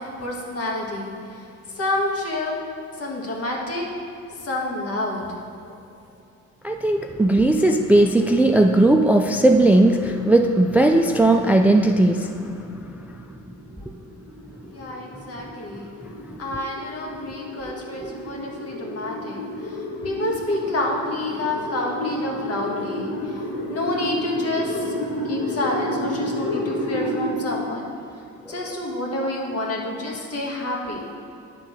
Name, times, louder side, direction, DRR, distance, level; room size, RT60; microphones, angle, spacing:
voice 1, 0.0-1.4 1.7-2.6 3.0-3.9 4.3-5.3 14.7-15.9 16.4-23.4 23.7-24.9 25.2-27.9 28.5-31.1, left 1 dB, 50° left, -1 dB, 1.7 m, -28 dB
voice 2, 6.6-12.5 13.9-14.0 18.0-18.1, right 2 dB, 5° right, 5 dB, 0.3 m, -17 dB
sound 1, 12.9-27.3, left 1 dB, 75° left, 1.9 m, -31 dB
10.0 x 3.8 x 6.3 m, 2.7 s
cardioid pair, 90°, 30 cm